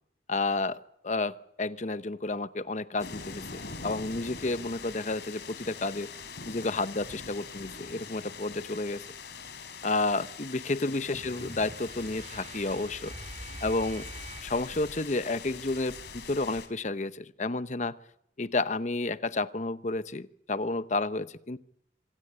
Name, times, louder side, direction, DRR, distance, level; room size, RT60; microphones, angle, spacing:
voice 1, 0.3-6.1 6.5-9.0 9.8-13.1 13.6-14.1 14.4-18.0 18.4-21.6, left 2 dB, 40° left, 13 dB, 0.9 m, -31 dB
sound 1, 3.0-16.7, left 5 dB, 70° left, 3.4 m, -43 dB
sound 2, 11.1-15.0, right 2 dB, 40° right, 2.4 m, -45 dB
26.5 x 16.5 x 8.8 m, 0.75 s
head